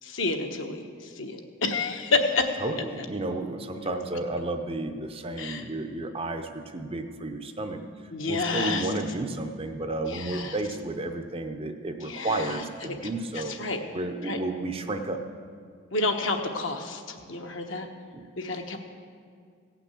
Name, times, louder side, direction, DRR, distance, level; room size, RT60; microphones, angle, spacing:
voice 1, 0.0-2.9 3.8-3.9 5.4-5.6 8.1-8.9 10.1-10.6 12.0-12.9 13.3-13.8 14.2-14.4 15.9-17.9 18.4-18.8, left 3 dB, 65° left, 4 dB, 1.1 m, -29 dB
voice 2, 2.6-7.8 8.3-13.6 13.9-15.2 18.1-18.2, right 2 dB, 25° right, 6 dB, 0.6 m, -32 dB
16.5 x 6.0 x 8.3 m, 2.1 s
head